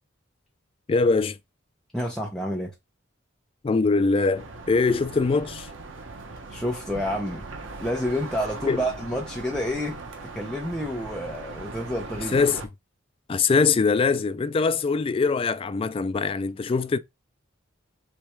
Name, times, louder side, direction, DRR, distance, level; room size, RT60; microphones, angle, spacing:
voice 1, 0.9-1.4 3.6-5.7 8.7-8.8 12.3-12.6 13.3-17.0, left 4 dB, 30° left, 0.3 m, -22 dB
voice 2, 1.9-2.7 6.5-7.5 7.8-10.0 10.3-12.4, equal, 5° left, 0.8 m, -29 dB
sound 1, 4.3-12.7, right 3 dB, 90° right, 1.0 m, -39 dB
3.4 x 3.3 x 4.4 m
head